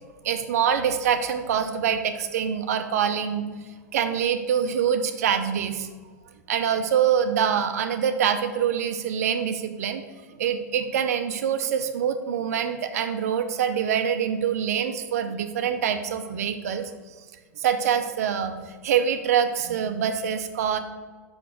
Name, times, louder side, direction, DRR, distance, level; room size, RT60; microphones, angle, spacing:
voice 1, 0.2-3.5 3.9-5.9 6.5-10.0 10.4-16.9 17.6-20.8, right 8 dB, 60° right, 8 dB, 0.7 m, -25 dB
6.2 x 4.8 x 6.2 m, 1.4 s
figure-of-eight pair, 90°, 9 cm